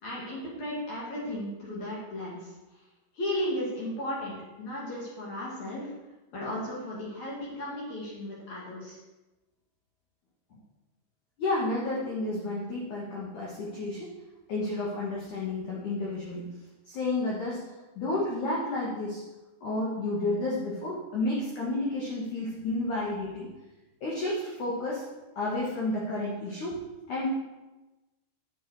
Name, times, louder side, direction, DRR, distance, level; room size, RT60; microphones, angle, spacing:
voice 1, 0.0-2.5 3.1-5.9 6.3-9.0, left 1 dB, 50° left, -5 dB, 2.3 m, -35 dB
voice 2, 11.4-14.1 14.5-16.5 16.9-17.6 18.0-19.2 19.6-23.5 24.0-25.0 25.4-26.8 27.1-27.3, left 2 dB, 70° left, -5 dB, 1.9 m, -31 dB
10.0 x 7.9 x 4.8 m, 1.1 s
omnidirectional pair, 6.0 m